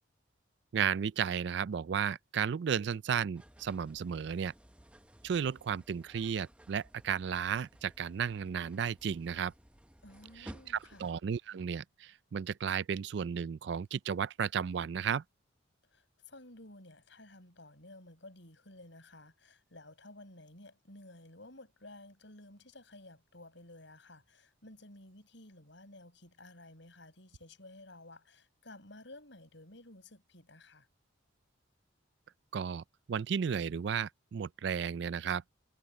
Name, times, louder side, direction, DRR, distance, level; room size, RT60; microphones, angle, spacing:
voice 1, 0.7-4.5 5.2-9.5 10.4-15.2 32.5-35.4, right 7 dB, 55° right, 0.3 m, -34 dB
sound 1, 3.3-11.1, equal, 5° right, 0.8 m, -56 dB
voice 2, 10.0-11.1 15.9-30.9, left 2 dB, 60° left, 7.4 m, -54 dB
head